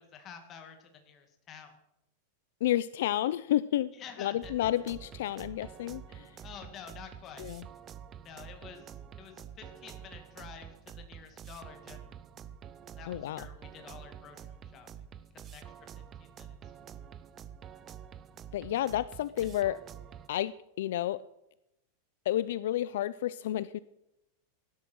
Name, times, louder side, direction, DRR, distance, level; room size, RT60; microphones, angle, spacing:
voice 1, 0.0-1.7 4.0-4.5 6.4-7.5 8.2-8.9 9.2-12.0 13.0-14.5 14.7-14.9 15.5-15.6 16.2-16.3, left 7 dB, 20° left, 5 dB, 2.1 m, -49 dB
voice 2, 2.6-3.9 4.2-6.4 7.4-7.7 13.0-13.5 18.5-19.8 20.3-21.2 22.3-23.8, left 13 dB, 60° left, 16 dB, 0.5 m, -31 dB
sound 1, 4.4-20.3, right 8 dB, 20° right, 0.6 m, -48 dB
17.5 x 12.0 x 6.1 m, 0.85 s
supercardioid pair, 180°, 0 cm